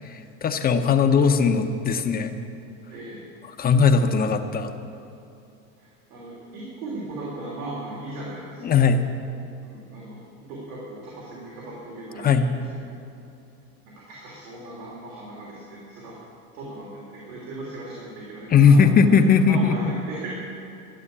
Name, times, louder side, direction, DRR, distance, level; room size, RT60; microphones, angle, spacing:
voice 1, 0.1-2.3 3.5-4.7 8.6-9.1 12.2-12.5 18.5-19.9, left 5 dB, 20° left, 7 dB, 0.7 m, -19 dB
voice 2, 2.9-3.3 5.8-8.7 9.6-10.2 10.5-12.5 14.1-16.2 16.5-20.3, right 2 dB, 90° right, -6 dB, 3.4 m, -38 dB
12.5 x 7.2 x 9.8 m, 2.6 s
supercardioid pair, 135°, 44 cm